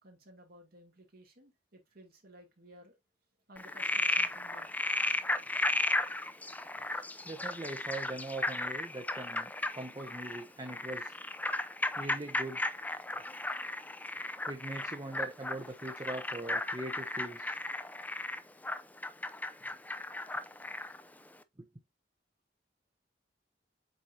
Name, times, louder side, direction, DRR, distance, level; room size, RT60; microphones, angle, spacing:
voice 1, 0.0-3.0 3.5-4.9, equal, 55° right, 2.5 m, -56 dB
Frog, 3.6-21.0, left 2 dB, 10° left, 0.5 m, -35 dB
voice 2, 6.9-11.1 11.9-12.8 14.5-17.6 21.6-21.7, right 2 dB, 25° right, 1.0 m, -41 dB
8.0 x 4.5 x 2.6 m
head